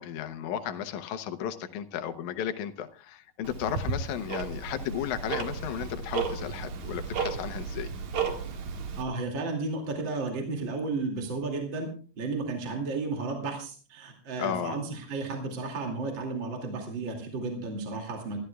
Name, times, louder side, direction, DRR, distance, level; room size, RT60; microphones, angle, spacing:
voice 1, 0.0-7.9 14.4-14.8, left 9 dB, 70° left, 9 dB, 2.3 m, -34 dB
Tick-tock, 3.4-9.0, right 6 dB, 65° right, 3.1 m, -34 dB
voice 2, 9.0-11.9 12.2-18.4, right 3 dB, 40° right, 2 dB, 3.0 m, -33 dB
27.5 x 13.5 x 2.3 m, 0.39 s
omnidirectional pair, 3.7 m